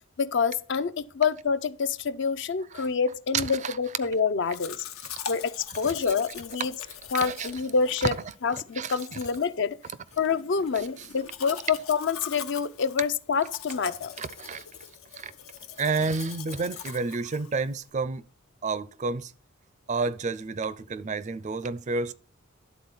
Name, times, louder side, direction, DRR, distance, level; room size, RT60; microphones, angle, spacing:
voice 1, 0.2-4.8 5.3-6.7 7.1-8.1 8.4-9.8 10.2-14.1, left 5 dB, 55° left, 0.5 m, -27 dB
voice 2, 3.3-3.8 5.8-5.9 6.6-6.7 7.2-7.5 8.0-8.1 8.8-9.2 11.0-11.1 14.2-14.6 15.1-15.3 15.8-18.2 18.6-19.3 19.9-22.1, right 4 dB, 35° right, 0.4 m, -30 dB
Domestic sounds home sounds, 4.5-17.9, left 8 dB, 85° left, 1.0 m, -42 dB
11.0 x 4.0 x 7.0 m
head